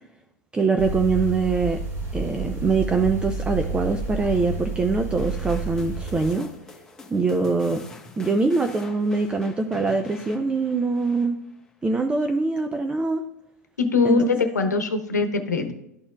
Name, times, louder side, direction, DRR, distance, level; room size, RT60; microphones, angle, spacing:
voice 1, 0.5-1.8 2.1-6.5 7.1-7.8 8.2-11.4 11.8-13.2 14.0-14.2, right 4 dB, 10° right, 6 dB, 0.4 m, -23 dB
sound 1, 0.8-6.3, right 2 dB, 30° right, 2.5 m, -30 dB
sound 2, 5.2-11.7, left 3 dB, 5° left, 1.1 m, -45 dB
voice 2, 13.8-15.7, left 4 dB, 85° left, 7 dB, 0.9 m, -22 dB
12.0 x 4.3 x 2.3 m, 0.88 s
hypercardioid pair, 100°, 9 cm